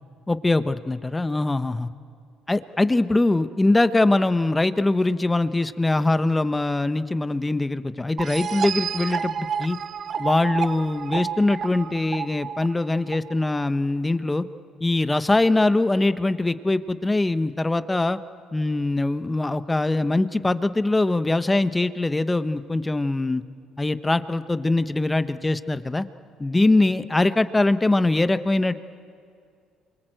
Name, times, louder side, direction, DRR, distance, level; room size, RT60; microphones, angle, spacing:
voice 1, 0.3-1.9 2.5-9.8 10.2-14.4 14.8-18.2 18.5-23.4 23.8-26.1 26.4-28.8, left 2 dB, 15° left, 11 dB, 1.1 m, -22 dB
sound 1, 8.2-13.7, right 7 dB, 55° right, 0.7 m, -30 dB
27.5 x 24.5 x 7.9 m, 2.3 s
supercardioid pair, 70°, 0 cm